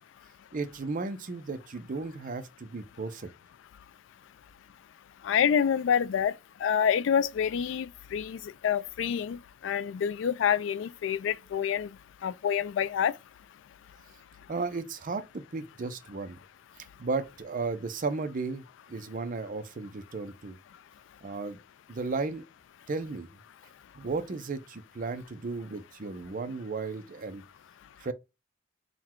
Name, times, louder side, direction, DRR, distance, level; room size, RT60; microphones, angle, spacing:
voice 1, 0.5-3.3 14.5-16.4 17.0-20.6 21.2-21.6 21.9-22.4 22.9-23.3 24.0-27.4 28.0-28.1, right 3 dB, 45° right, 0.5 m, -34 dB
voice 2, 5.2-6.3 6.6-11.9 12.2-13.1, left 8 dB, 70° left, 0.3 m, -27 dB
3.9 x 2.2 x 4.4 m
head